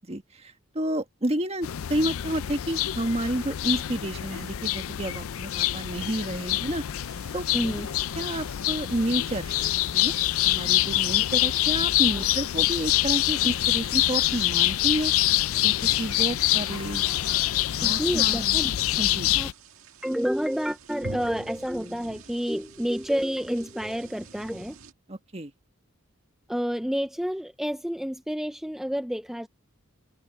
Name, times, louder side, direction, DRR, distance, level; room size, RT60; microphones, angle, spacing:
voice 1, 0.0-6.8 7.3-7.4 8.2-9.6 9.9-10.1 10.5-15.1 15.6-17.0 17.8-18.6 19.0-19.3 25.1-25.5, right 1 dB, 30° right, 1.6 m, -30 dB
sound 1, 1.6-19.5, left 15 dB, 80° left, 0.4 m, -25 dB
sound 2, 7.0-24.9, right 3 dB, 80° right, 1.9 m, -49 dB
voice 2, 7.5-7.9 12.1-12.2 17.8-18.7 19.4-19.5 20.0-24.8 26.5-29.5, equal, ahead, 0.5 m, -29 dB
head